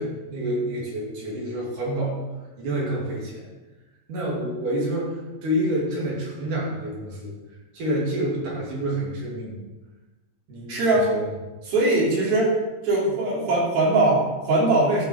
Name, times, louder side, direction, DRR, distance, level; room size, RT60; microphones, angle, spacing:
voice 1, 0.0-2.2 2.6-3.5 4.1-7.3 7.7-9.6 10.5-11.2, right 1 dB, 60° right, -3 dB, 4.1 m, -28 dB
voice 2, 10.7-11.1 11.7-12.6 12.8-15.1, right 2 dB, 75° right, -4 dB, 5.3 m, -21 dB
12.5 x 7.4 x 6.4 m, 1.1 s
omnidirectional pair, 4.3 m